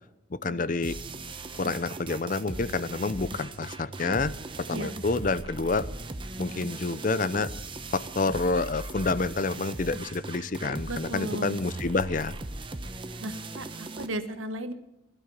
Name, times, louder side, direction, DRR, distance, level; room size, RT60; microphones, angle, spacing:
voice 1, 0.3-0.9 1.6-5.9 6.4-7.5 7.9-12.4, left 3 dB, 40° left, 16 dB, 0.5 m, -28 dB
sound 1, 0.8-14.1, right 2 dB, 25° right, 0.8 m, -38 dB
voice 2, 10.9-11.6 13.2-14.7, right 1 dB, 85° right, 9 dB, 1.4 m, -35 dB
16.5 x 11.5 x 7.3 m, 0.91 s
head